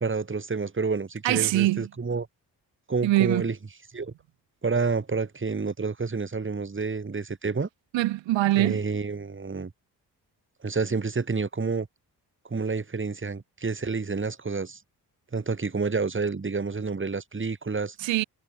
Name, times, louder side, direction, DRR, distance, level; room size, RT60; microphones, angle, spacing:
voice 1, 0.0-2.3 2.9-3.6 3.9-4.1 4.6-7.7 8.5-9.7 10.6-11.9 12.5-14.8 15.3-17.9, right 4 dB, 25° right, 1.7 m, -29 dB
voice 2, 1.2-1.9 3.0-3.4 7.9-8.8 18.0-18.2, right 16 dB, 80° right, 0.8 m, -23 dB
supercardioid pair, 45°, 44 cm